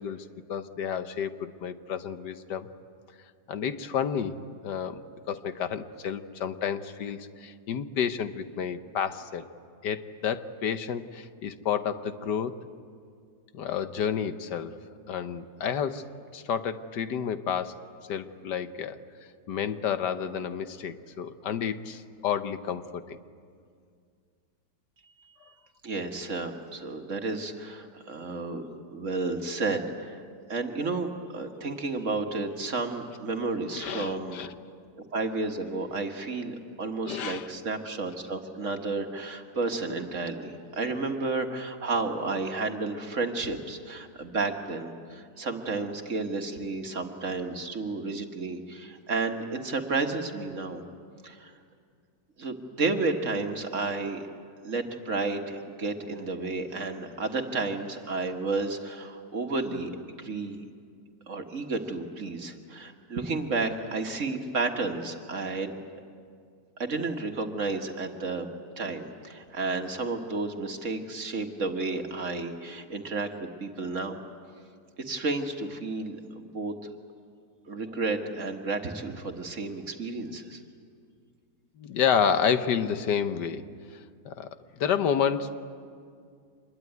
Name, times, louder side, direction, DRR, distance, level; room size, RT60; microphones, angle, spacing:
voice 1, 0.0-2.7 3.5-4.4 4.6-9.5 9.8-12.5 13.5-14.7 15.1-16.0 16.3-17.8 18.1-19.0 19.5-23.2 33.8-34.5 37.1-37.5 81.8-83.6 84.2-84.5 84.8-85.5, left 7 dB, 75° left, 10 dB, 1.6 m, -30 dB
voice 2, 25.8-28.6 28.9-30.2 30.5-34.4 35.1-50.8 51.2-51.5 52.4-54.2 54.6-59.9 60.2-60.6 61.3-65.8 66.8-68.5 68.8-74.2 75.0-76.9 77.7-80.6, right 3 dB, 45° right, 4 dB, 1.9 m, -32 dB
26.0 x 21.5 x 9.4 m, 2.2 s
omnidirectional pair, 1.9 m